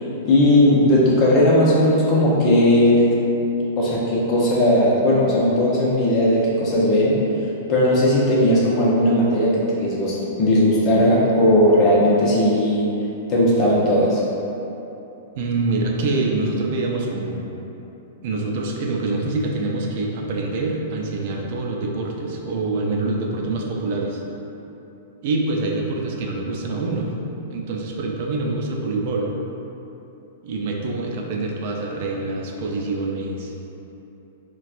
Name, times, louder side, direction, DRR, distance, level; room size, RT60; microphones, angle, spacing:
voice 1, 0.2-3.2 3.8-7.2 7.7-12.9 13.3-14.2, left 1 dB, 40° left, -6 dB, 0.8 m, -17 dB
voice 2, 15.4-17.4 18.2-24.2 25.2-27.1 27.5-29.3 30.4-33.5, right 2 dB, 55° right, -1 dB, 0.4 m, -25 dB
4.0 x 2.3 x 2.5 m, 3.0 s
hypercardioid pair, 135°, 0 cm